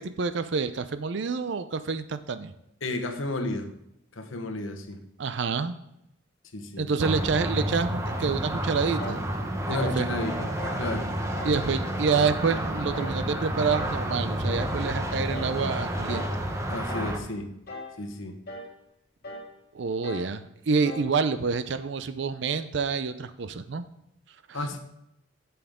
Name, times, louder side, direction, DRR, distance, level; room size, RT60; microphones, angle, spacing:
voice 1, 0.0-2.5 5.2-5.8 6.8-9.2 9.7-10.1 11.4-16.3 19.7-23.8 24.5-24.6, right 5 dB, 65° right, 11 dB, 0.5 m, -28 dB
voice 2, 2.8-3.7 4.2-5.0 6.5-6.9 9.7-11.1 16.7-17.5 18.0-18.4 24.5-24.8, left 2 dB, 80° left, 6 dB, 1.1 m, -32 dB
sound 1, 7.0-17.2, right 1 dB, 15° right, 0.8 m, -30 dB
sound 2, 9.0-9.3 9.8-10.1 10.6-10.9 11.4-11.6 12.1-12.5 12.9-13.2 13.7-14.0 14.5-14.8 15.3-15.6 16.1-16.4 16.9-17.2 17.7-18.0 18.5-18.7 19.2-19.5 20.0-20.3 20.8-21.1, left 1 dB, 50° left, 1.5 m, -39 dB
8.9 x 7.0 x 3.6 m, 0.83 s
head